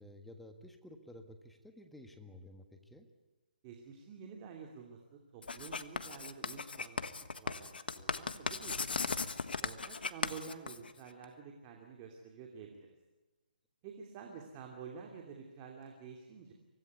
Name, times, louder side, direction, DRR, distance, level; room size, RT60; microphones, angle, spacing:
voice 1, 0.0-3.1, left 1 dB, 5° left, 5 dB, 1.5 m, -54 dB
voice 2, 3.6-7.1 7.4-9.1 9.6-12.9 13.8-16.5, right 6 dB, 25° right, 2 dB, 2.9 m, -49 dB
Writing, 5.4-11.2, left 4 dB, 85° left, 1.5 m, -38 dB
25.0 x 18.0 x 9.5 m, 1.2 s
hypercardioid pair, 160°, 5 cm